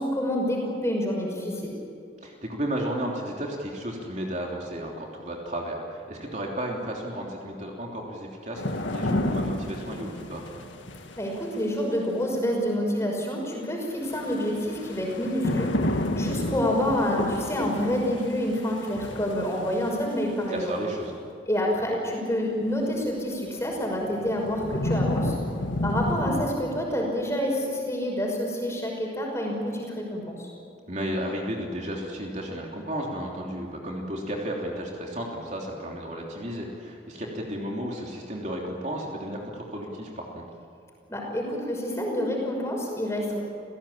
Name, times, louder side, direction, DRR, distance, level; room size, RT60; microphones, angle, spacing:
voice 1, 0.0-1.7 11.2-20.7 21.5-25.3 25.8-30.5 41.1-43.4, equal, 15° left, -1 dB, 5.9 m, -28 dB
voice 2, 2.2-10.4 20.5-21.1 30.9-40.4, right 1 dB, 40° right, -1 dB, 3.2 m, -33 dB
sound 1, 8.6-11.7 14.1-20.4 23.0-23.1 23.7-26.5, left 1 dB, 85° left, 2.0 m, -31 dB
29.5 x 17.5 x 8.8 m, 2.5 s
head